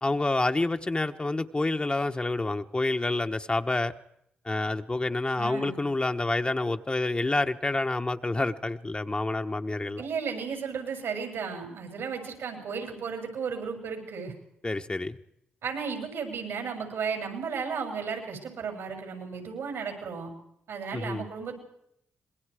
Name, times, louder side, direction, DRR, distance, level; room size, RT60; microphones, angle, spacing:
voice 1, 0.0-3.9 4.4-10.0 14.6-15.2 20.9-21.3, left 2 dB, 25° left, 6 dB, 1.2 m, -28 dB
voice 2, 5.4-5.8 10.0-14.3 15.6-20.3 20.7-21.5, right 6 dB, 85° right, 4 dB, 6.8 m, -34 dB
26.0 x 21.5 x 5.0 m, 0.73 s
cardioid pair, 60°, 4 cm